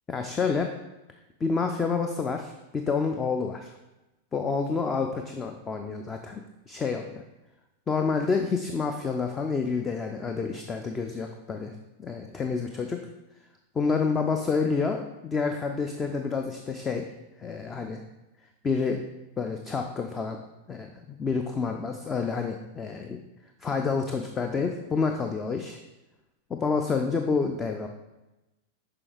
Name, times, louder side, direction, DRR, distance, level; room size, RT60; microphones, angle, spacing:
voice 1, 0.1-0.7 1.4-3.7 4.3-7.2 7.9-11.7 12.0-13.0 13.7-17.1 17.4-18.0 18.6-19.0 19.4-20.4 20.7-23.2 23.6-25.8 26.5-27.9, left 5 dB, 20° left, 5 dB, 0.4 m, -28 dB
6.8 x 4.9 x 3.5 m, 1.0 s
figure-of-eight pair, 90°, 0 cm